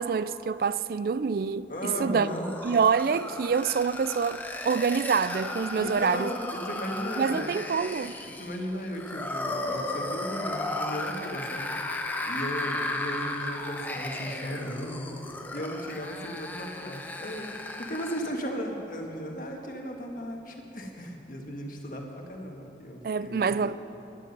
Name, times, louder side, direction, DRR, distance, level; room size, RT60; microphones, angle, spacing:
voice 1, 0.0-2.3 2.6-6.3 7.2-8.2 23.0-23.8, right 5 dB, 55° right, 0.3 m, -26 dB
voice 2, 1.7-2.5 5.8-7.5 8.2-11.7 12.2-23.8, equal, 50° left, 1.5 m, -36 dB
sound 1, 1.7-18.4, left 2 dB, 10° left, 0.7 m, -35 dB
16.0 x 11.5 x 5.4 m
head